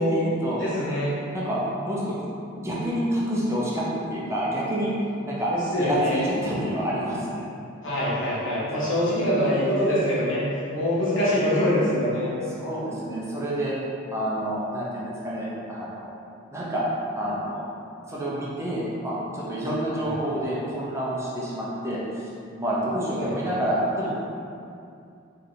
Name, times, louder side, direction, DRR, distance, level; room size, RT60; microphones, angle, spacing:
voice 1, 0.0-0.6 1.3-1.6 1.8-2.2 2.5-5.5 5.8-7.4 12.4-13.8 14.1-16.2 16.5-16.8 17.2-17.6 18.1-24.1, equal, 15° right, -7 dB, 0.6 m, -28 dB
voice 2, 0.6-1.1 5.5-6.2 7.8-10.4 10.7-12.3 20.0-20.1 23.2-23.5, equal, 65° left, -8 dB, 1.3 m, -24 dB
3.8 x 3.3 x 3.8 m, 2.5 s
head